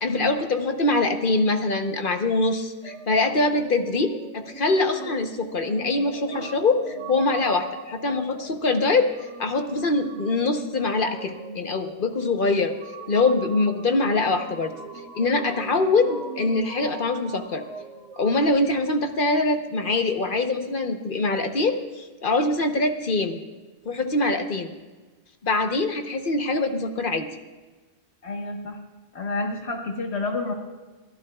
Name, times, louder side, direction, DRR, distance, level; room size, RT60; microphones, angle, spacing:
voice 1, 0.0-9.1 9.4-12.7 13.1-14.7 15.1-17.6 18.2-23.4 23.8-24.7 25.4-27.3, left 3 dB, 50° left, 5 dB, 1.2 m, -23 dB
sound 1, 2.8-18.5, right 4 dB, 75° right, 1.6 m, -41 dB
voice 2, 28.2-28.8 29.1-30.5, left 2 dB, 70° left, 2 dB, 1.7 m, -29 dB
27.0 x 13.0 x 2.4 m, 1.2 s
omnidirectional pair, 1.1 m